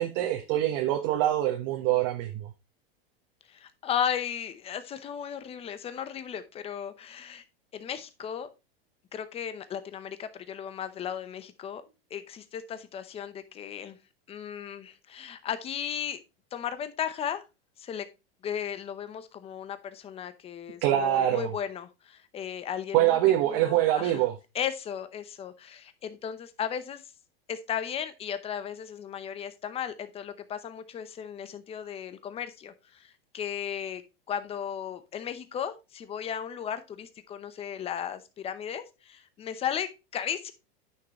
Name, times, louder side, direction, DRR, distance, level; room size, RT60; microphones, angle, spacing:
voice 1, 0.0-2.5 20.8-21.5 22.9-24.3, right 13 dB, 45° right, 1.2 m, -24 dB
voice 2, 3.5-7.4 7.7-8.5 9.1-11.8 12.1-14.0 14.3-16.2 16.5-17.4 17.8-18.1 18.4-23.2 23.4-24.2 24.5-27.0 27.5-34.0 34.3-40.5, left 8 dB, 20° left, 0.8 m, -35 dB
9.8 x 6.2 x 3.0 m
supercardioid pair, 145°, 31 cm